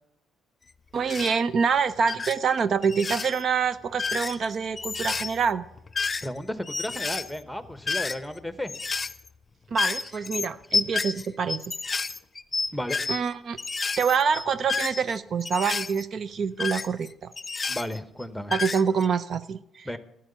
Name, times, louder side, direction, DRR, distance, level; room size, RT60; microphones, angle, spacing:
voice 1, 0.9-5.6 9.7-11.6 13.1-13.6 14.0-17.3 18.5-19.9, right 6 dB, 55° right, 15 dB, 0.6 m, -26 dB
sound 1, 1.0-1.4 2.0-2.4 2.8-3.4 3.9-6.4 6.7-8.4 8.7-9.3 9.7-13.3 13.6-16.0 16.6-18.2 18.5-19.1, left 4 dB, 30° left, 0.7 m, -30 dB
voice 2, 6.2-8.7 12.7-13.0 17.7-18.5 19.8-20.0, left 1 dB, 5° left, 11 dB, 1.3 m, -33 dB
13.0 x 8.8 x 7.0 m, 0.80 s
hypercardioid pair, 55°, 0 cm